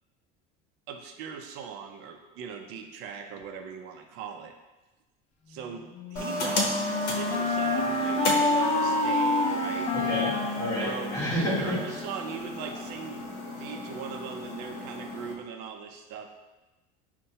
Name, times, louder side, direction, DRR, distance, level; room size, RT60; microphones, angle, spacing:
voice 1, 0.9-4.5 5.5-9.9 10.8-13.3 13.6-16.3, right 6 dB, 60° right, 4 dB, 0.5 m, -40 dB
Wind instrument woodwind instrument, 5.9-11.7, left 2 dB, 35° left, 0.5 m, -28 dB
sound 1, 6.2-15.3, left 1 dB, 70° left, 0.8 m, -33 dB
voice 2, 9.9-12.0, equal, 15° left, -7 dB, 1.2 m, -30 dB
5.5 x 2.2 x 2.7 m, 1.1 s
cardioid pair, 150°, 20 cm